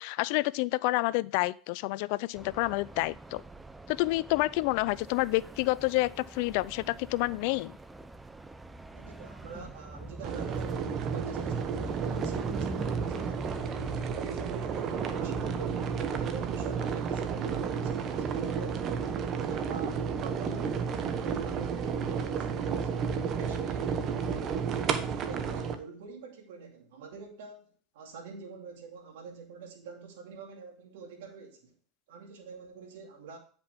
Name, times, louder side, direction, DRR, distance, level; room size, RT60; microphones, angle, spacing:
voice 1, 0.0-3.4 3.9-7.8, left 20 dB, 65° left, 0.4 m, -29 dB
sound 1, 2.3-21.7, right 2 dB, 10° right, 0.7 m, -44 dB
voice 2, 8.9-13.6 14.1-15.9 16.2-19.0 19.3-24.9 25.2-27.7 27.9-31.7 32.1-33.4, right 5 dB, 80° right, 2.5 m, -46 dB
sound 2, 10.2-25.7, right 6 dB, 45° right, 1.1 m, -32 dB
9.7 x 5.9 x 3.4 m
hypercardioid pair, 95°, 0 cm